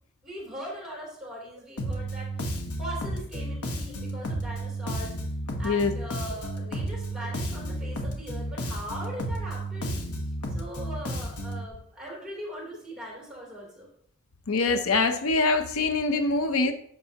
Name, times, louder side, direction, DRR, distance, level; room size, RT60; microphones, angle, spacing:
voice 1, 0.2-2.4 2.7-5.1 5.6-10.0 10.5-13.9, right 1 dB, 5° right, -4 dB, 3.1 m, -40 dB
Bass guitar, 1.8-11.7, right 1 dB, 85° left, 1.2 m, -32 dB
voice 2, 14.5-16.7, left 3 dB, 70° left, 9 dB, 0.6 m, -24 dB
9.9 x 6.7 x 2.8 m, 0.66 s
head